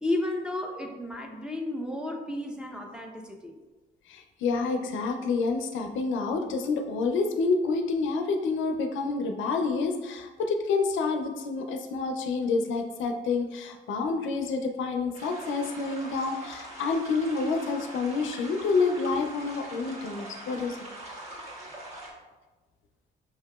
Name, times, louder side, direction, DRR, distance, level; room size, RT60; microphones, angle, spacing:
voice 1, 0.0-3.6, left 1 dB, 5° right, 2 dB, 0.5 m, -32 dB
voice 2, 4.1-20.8, left 4 dB, 75° left, 4 dB, 0.5 m, -28 dB
sound 1, 15.1-22.1, right 1 dB, 35° right, 1.1 m, -43 dB
5.6 x 2.8 x 2.3 m, 1.2 s
cardioid pair, 90°, 20 cm